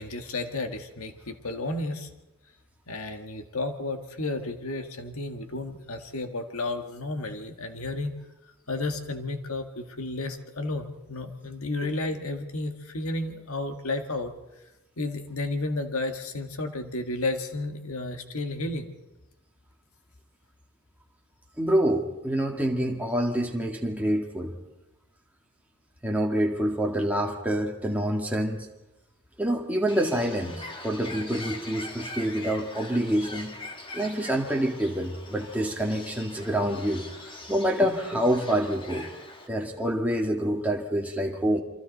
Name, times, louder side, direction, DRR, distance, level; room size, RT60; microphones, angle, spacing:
voice 1, 0.0-2.1 2.9-8.1 8.7-14.3 15.0-18.9, left 2 dB, 75° left, 6 dB, 1.7 m, -32 dB
voice 2, 21.6-24.5 26.0-28.7 29.4-33.5 33.9-37.0 37.5-39.1 39.5-41.6, right 1 dB, 5° right, 0 dB, 2.0 m, -27 dB
Bird, 29.9-39.5, left 2 dB, 25° left, 1.8 m, -42 dB
28.5 x 24.0 x 4.1 m, 1.0 s
head